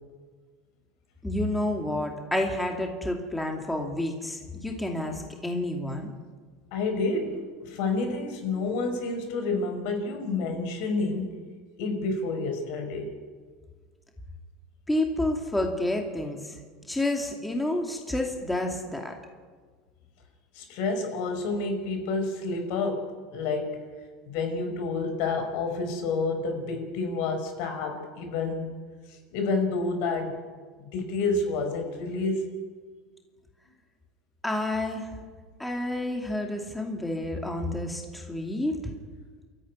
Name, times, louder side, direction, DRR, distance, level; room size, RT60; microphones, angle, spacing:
voice 1, 1.2-6.1 14.9-16.6 16.9-19.1 34.4-35.1 35.6-38.8, left 1 dB, 5° left, 2 dB, 2.6 m, -29 dB
voice 2, 6.7-11.4 11.8-13.1 20.5-23.8 24.3-28.8 29.3-30.4 30.8-32.4, left 3 dB, 65° left, 6 dB, 5.4 m, -29 dB
29.0 x 14.0 x 9.8 m, 1.5 s
supercardioid pair, 140°, 0 cm